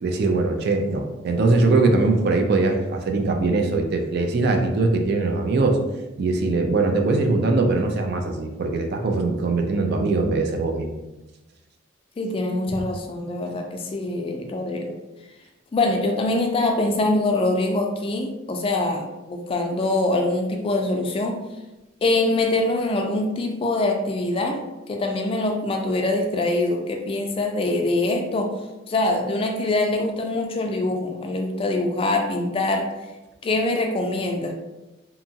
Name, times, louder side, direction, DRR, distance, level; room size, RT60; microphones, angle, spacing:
voice 1, 0.0-5.8 6.2-11.0 12.7-12.8, right 3 dB, 55° right, 4 dB, 0.4 m, -21 dB
voice 2, 12.2-14.9 15.7-21.4 22.0-28.5 28.9-32.9 33.4-34.5, left 2 dB, 30° left, 3 dB, 0.3 m, -24 dB
2.8 x 2.3 x 2.7 m, 1.0 s
head